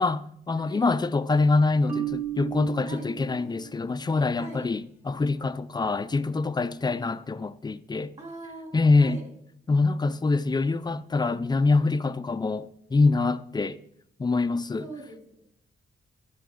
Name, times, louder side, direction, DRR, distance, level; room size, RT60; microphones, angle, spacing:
voice 1, 0.0-8.1 8.7-9.2 9.7-13.8 14.2-14.9, left 3 dB, 25° left, 0.5 m, -25 dB
Marimba xylophone, 1.9-3.9, right 10 dB, 10° right, 1.1 m, -34 dB
voice 2, 4.3-4.7 6.8-7.0 8.2-9.3 14.8-15.4, right 2 dB, 35° right, 3.6 m, -42 dB
15.5 x 5.9 x 3.8 m
cardioid pair, 85°, 19 cm